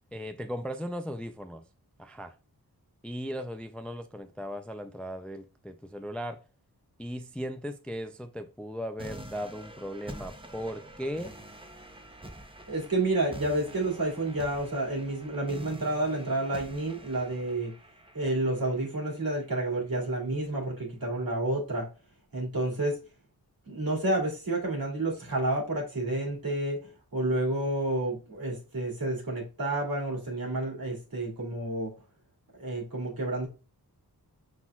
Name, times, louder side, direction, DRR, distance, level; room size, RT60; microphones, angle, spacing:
voice 1, 0.1-1.6 2.0-2.4 3.0-6.4 7.0-11.4, equal, 5° left, 0.4 m, -37 dB
sound 1, 9.0-20.0, right 1 dB, 15° right, 0.8 m, -47 dB
voice 2, 12.7-17.7 18.1-21.9 22.3-23.0 23.7-31.9 32.5-33.5, right 2 dB, 65° right, 2.3 m, -30 dB
5.7 x 3.9 x 2.3 m
wide cardioid pair, 70°, 38 cm